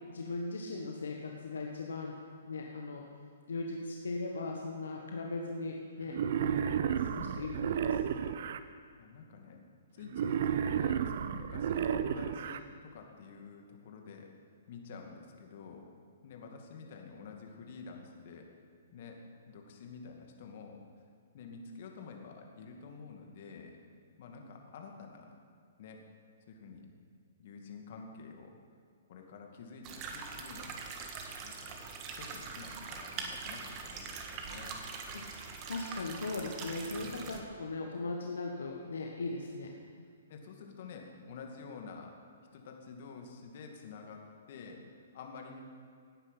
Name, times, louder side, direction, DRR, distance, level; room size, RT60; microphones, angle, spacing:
voice 1, 0.1-2.1 2.4-3.0 3.5-8.0 35.1-35.2 35.7-39.7, left 3 dB, 75° left, 1 dB, 1.5 m, -39 dB
Wild animals, 6.1-8.6 10.1-12.6, right 8 dB, 55° right, 0.7 m, -32 dB
voice 2, 9.0-9.6 9.9-14.3 14.7-15.9 16.2-18.5 18.9-19.2 19.5-20.8 21.3-23.7 24.2-25.3 25.8-26.0 26.5-26.9 27.4-28.5 29.1-30.8 31.4-31.8 32.2-34.8 37.0-37.3 40.3-42.1 42.5-45.6, left 5 dB, 50° left, 2 dB, 2.3 m, -49 dB
sound 1, 29.8-37.4, right 5 dB, 30° right, 1.7 m, -43 dB
17.5 x 9.7 x 5.8 m, 2.2 s
figure-of-eight pair, 125°, 0 cm